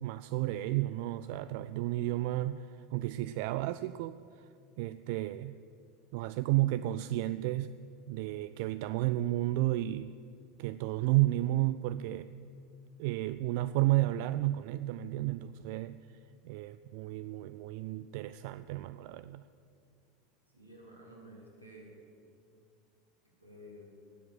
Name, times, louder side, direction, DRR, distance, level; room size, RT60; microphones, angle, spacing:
voice 1, 0.0-4.5 4.8-5.6 6.1-7.7 8.1-10.1 10.6-12.3 13.0-16.0 16.4-19.5, right 16 dB, 55° right, 14 dB, 0.3 m, -32 dB
voice 2, 20.5-21.9 23.4-23.9, equal, 90° right, -2 dB, 3.0 m, -52 dB
18.5 x 7.7 x 7.8 m, 2.3 s
figure-of-eight pair, 80°, 0 cm